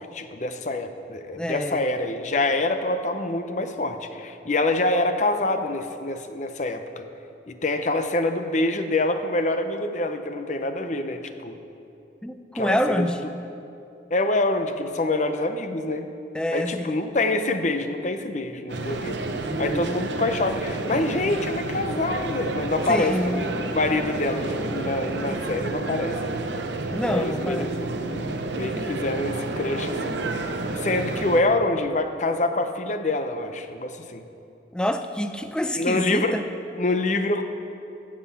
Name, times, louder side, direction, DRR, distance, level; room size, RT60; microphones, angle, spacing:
voice 1, 0.0-7.0 7.5-11.6 12.5-13.1 14.1-16.1 16.5-19.3 19.6-26.3 27.1-27.7 28.1-30.2 30.7-34.2 35.8-36.4 36.7-37.4, left 2 dB, 40° left, 8 dB, 0.7 m, -26 dB
voice 2, 1.4-1.8 12.2-13.2 16.3-16.9 19.5-19.9 22.9-23.5 26.9-27.7 34.7-36.4, equal, 5° left, 8 dB, 0.3 m, -27 dB
sound 1, 18.7-31.4, right 2 dB, 75° right, 0.7 m, -30 dB
15.5 x 7.5 x 5.7 m, 2.7 s
head